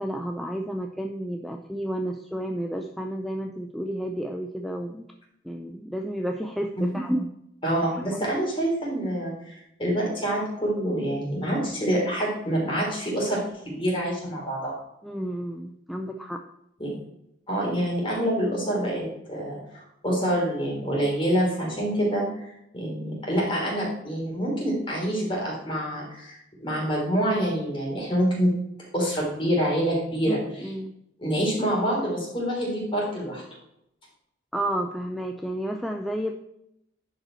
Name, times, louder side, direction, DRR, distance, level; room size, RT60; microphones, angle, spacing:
voice 1, 0.0-5.1 5.4-7.3 7.9-8.2 15.0-16.4 30.3-30.9 34.5-36.3, right 1 dB, ahead, 2 dB, 0.4 m, -31 dB
voice 2, 7.6-13.4 13.7-14.7 16.8-17.0 17.5-22.5 22.7-28.5 28.9-30.4 31.2-33.4, equal, 25° left, -3 dB, 3.5 m, -26 dB
10.5 x 5.4 x 4.4 m, 0.80 s
head